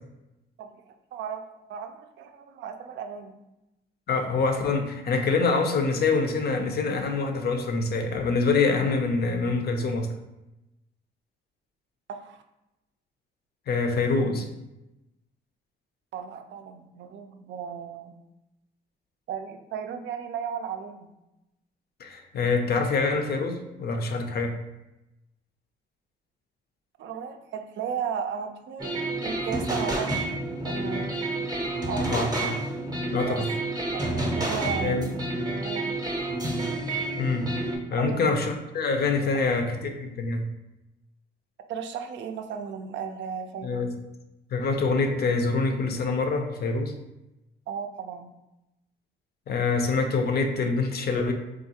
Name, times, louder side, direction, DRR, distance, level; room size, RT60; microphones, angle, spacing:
voice 1, 0.6-1.4 1.7-3.4 12.1-12.4 16.1-18.1 19.3-21.1 27.0-30.3 30.6-31.1 31.5-31.6 31.9-32.3 33.2-33.4 33.9-35.0 35.6-36.0 37.9-38.2 41.7-43.9 47.7-48.3, right 7 dB, 65° right, 6 dB, 0.4 m, -35 dB
voice 2, 4.1-10.1 13.7-14.5 22.0-24.6 32.1-32.6 33.1-33.4 34.8-35.1 37.2-37.5 37.9-40.4 43.6-43.9 44.5-47.0 49.5-51.3, left 4 dB, 50° left, 5 dB, 0.5 m, -25 dB
sound 1, 28.8-37.8, right 2 dB, 20° right, 0.7 m, -29 dB
3.6 x 2.3 x 2.7 m, 0.95 s
cardioid pair, 90°, 20 cm